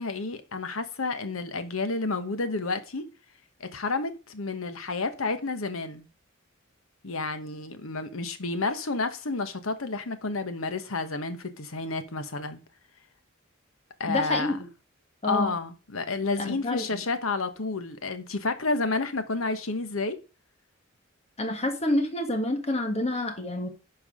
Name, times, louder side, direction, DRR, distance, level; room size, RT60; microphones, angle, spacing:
voice 1, 0.0-3.1 3.6-6.1 7.0-12.6 14.0-14.6 15.2-20.2, left 3 dB, 85° left, 1.2 m, -30 dB
voice 2, 14.1-14.7 15.2-15.5 16.4-17.0 21.4-23.7, left 1 dB, 30° left, 1.6 m, -28 dB
10.5 x 4.7 x 5.0 m
head